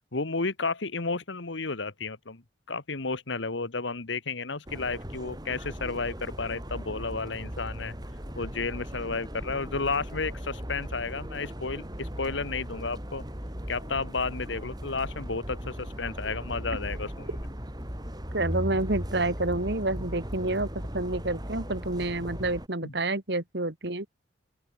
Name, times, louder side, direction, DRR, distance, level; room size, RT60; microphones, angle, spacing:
voice 1, 0.1-2.4 2.7-7.9 8.4-13.2 13.7-17.3 22.8-22.9, left 4 dB, 75° left, 1.5 m, -32 dB
sound 1, 4.7-22.7, equal, 20° right, 6.4 m, -37 dB
voice 2, 18.3-20.7 20.9-24.1, right 2 dB, 60° right, 2.3 m, -29 dB
open air
head